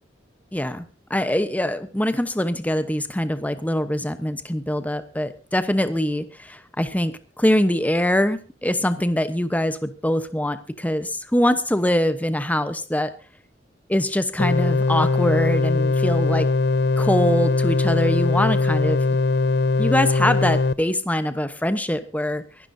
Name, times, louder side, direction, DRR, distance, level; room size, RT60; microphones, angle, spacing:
voice 1, 0.5-13.1 13.9-16.5 17.0-19.0 19.8-22.4, left 1 dB, 10° left, 11 dB, 1.0 m, -23 dB
sound 1, 14.4-20.7, left 3 dB, 65° left, 0.7 m, -20 dB
24.5 x 12.0 x 2.7 m, 0.33 s
head